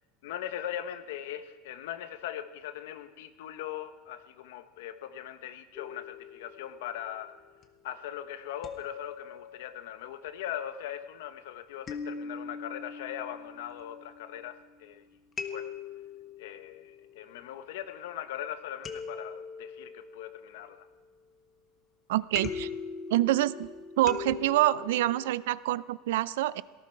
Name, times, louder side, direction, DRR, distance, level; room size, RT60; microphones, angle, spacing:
voice 1, 0.2-7.3 7.8-15.0 15.4-15.7 16.4-20.8, left 11 dB, 75° left, 10 dB, 1.1 m, -40 dB
sound 1, 5.8-7.8 8.6-10.1 11.9-14.8 15.4-18.0 18.8-21.1 22.4-25.3, left 5 dB, 20° left, 1.0 m, -42 dB
voice 2, 22.1-22.7 23.1-23.7 24.0-26.6, right 15 dB, 80° right, 18 dB, 0.4 m, -26 dB
18.0 x 14.0 x 4.5 m, 1.3 s
supercardioid pair, 170°, 0 cm